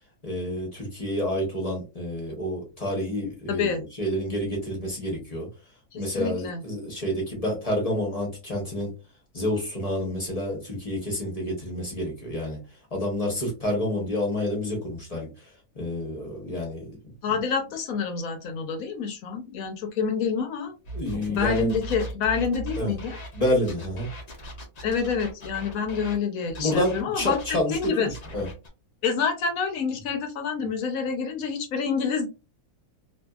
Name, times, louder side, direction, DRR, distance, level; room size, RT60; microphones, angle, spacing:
voice 1, 0.2-5.5 5.9-8.9 9.3-12.6 12.9-15.3 15.7-16.9 20.9-21.7 22.8-22.9 23.3-24.1 26.6-28.5, left 1 dB, 30° left, -1 dB, 0.8 m, -28 dB
voice 2, 3.5-3.8 5.9-6.6 17.2-20.7 21.2-23.2 24.8-28.1 29.0-32.3, left 6 dB, 70° left, 5 dB, 1.0 m, -27 dB
sound 1, 20.8-26.2 26.5-28.7, right 1 dB, 50° left, 0.4 m, -38 dB
2.6 x 2.6 x 2.3 m, 0.29 s
omnidirectional pair, 1.7 m